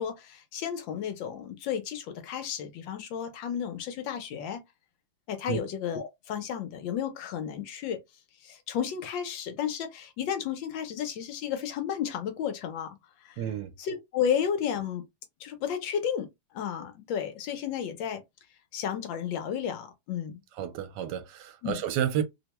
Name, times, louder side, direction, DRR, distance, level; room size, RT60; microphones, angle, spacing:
voice 1, 0.0-4.6 5.3-8.0 8.4-13.0 13.2-13.4 13.8-15.0 15.4-16.3 16.5-18.2 18.7-20.4 21.6-21.8, left 8 dB, 85° left, 1.5 m, -32 dB
voice 2, 13.4-13.7 20.6-22.2, right 10 dB, 75° right, 1.2 m, -31 dB
3.3 x 2.2 x 2.9 m
omnidirectional pair, 2.0 m